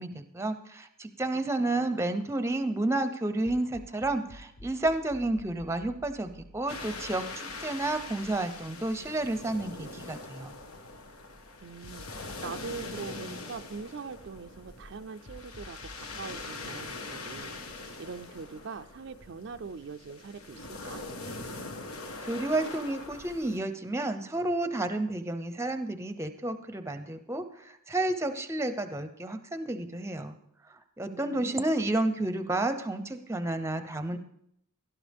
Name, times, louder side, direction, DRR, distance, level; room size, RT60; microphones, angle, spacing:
voice 1, 0.0-10.5 22.2-30.4 30.7-34.2, right 2 dB, 10° right, 9 dB, 0.7 m, -31 dB
voice 2, 1.6-2.1 11.6-21.0 31.1-31.7, right 5 dB, 55° right, 8 dB, 0.4 m, -43 dB
sound 1, 3.4-9.8 10.2-10.3 11.8-14.3 15.2-18.0, left 1 dB, 50° left, 0.8 m, -52 dB
sound 2, 6.7-23.6, left 3 dB, 80° left, 1.5 m, -42 dB
18.0 x 12.0 x 3.5 m, 0.74 s
head